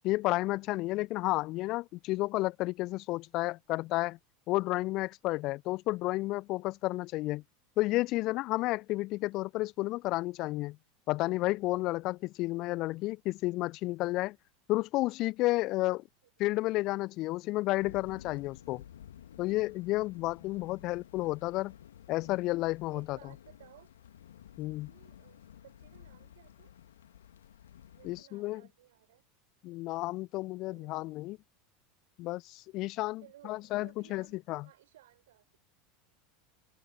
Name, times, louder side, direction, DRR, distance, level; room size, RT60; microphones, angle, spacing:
voice 1, 0.0-4.2 4.5-7.4 7.8-10.8 11.1-14.4 14.7-16.0 16.4-18.8 19.4-21.7 22.1-23.2 24.6-24.9 28.0-28.6 29.6-31.4 32.2-34.7, left 19 dB, 45° left, 0.5 m, -31 dB
sound 1, 17.8-28.2, left 10 dB, 70° left, 2.3 m, -53 dB
voice 2, 22.9-23.9 24.7-26.7 27.9-29.2 30.7-31.0 33.2-35.6, right 14 dB, 65° right, 6.6 m, -59 dB
figure-of-eight pair, 80°, 0 cm